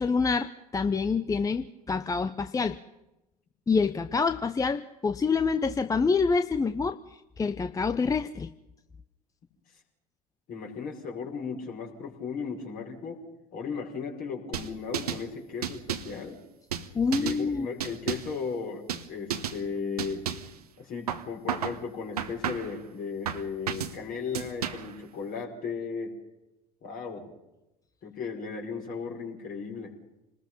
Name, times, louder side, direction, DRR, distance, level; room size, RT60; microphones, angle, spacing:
voice 1, 0.0-2.8 3.7-7.0 7.4-8.5 16.9-17.7, left 4 dB, 20° left, 11 dB, 0.8 m, -26 dB
voice 2, 10.5-13.2 13.5-16.4 17.1-20.2 20.8-26.2 26.8-27.3 28.0-30.0, left 5 dB, 50° left, 2 dB, 5.2 m, -36 dB
sound 1, 14.5-15.2 15.6-16.2 16.7-17.4 17.8-18.4 18.9-19.1 19.3-19.6 20.0-20.5 21.1-21.8 22.2-22.8 23.3-24.0 24.3-25.0, right 8 dB, 80° right, 1.3 m, -33 dB
28.0 x 20.0 x 5.5 m, 0.96 s
figure-of-eight pair, 65°, 19 cm